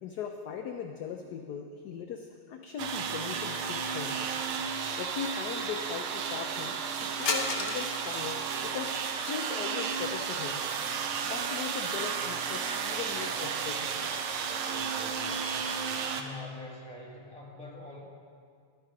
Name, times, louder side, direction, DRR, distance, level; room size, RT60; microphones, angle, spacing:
voice 1, 0.0-4.3 5.0-9.0 9.3-10.7 11.2-13.9, left 7 dB, 70° left, 4 dB, 1.0 m, -39 dB
sound 1, 2.8-16.2, right 6 dB, 85° right, 1.6 m, -33 dB
sound 2, 7.2-9.4 10.5-11.2 11.6-11.7 12.6-12.7 13.2-14.2, left 3 dB, 45° left, 0.7 m, -37 dB
voice 2, 15.9-18.0, left 3 dB, 5° left, -5 dB, 1.6 m, -44 dB
12.0 x 9.4 x 5.0 m, 2.2 s
omnidirectional pair, 2.3 m